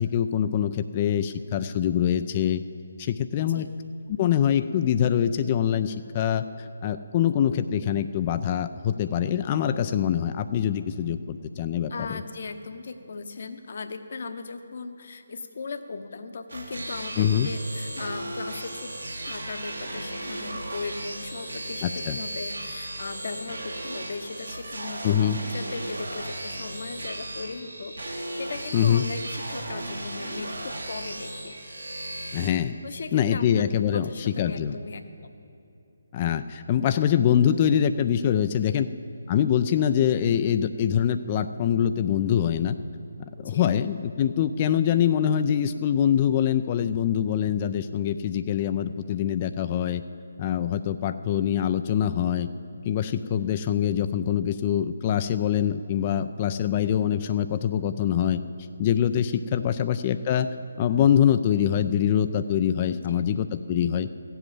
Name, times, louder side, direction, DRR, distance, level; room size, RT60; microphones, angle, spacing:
voice 1, 0.0-2.6 3.0-3.7 4.1-12.2 17.2-17.5 21.8-22.2 25.0-25.4 28.7-29.0 32.3-32.8 33.1-34.7 36.1-38.9 39.3-42.8 43.4-50.0 50.4-52.5 52.9-58.4 58.8-60.5 60.8-64.1, left 9 dB, 25° left, 10 dB, 0.3 m, -24 dB
voice 2, 11.9-18.9 19.2-31.5 32.8-33.7 33.9-35.3 38.7-38.8 43.4-43.7 49.1-49.4 53.2-53.3 62.9-63.2, left 4 dB, 50° left, 9 dB, 0.8 m, -38 dB
sound 1, 16.5-32.5, right 1 dB, 75° right, 1.8 m, -36 dB
15.5 x 7.9 x 7.5 m, 2.8 s
figure-of-eight pair, 145°, 0 cm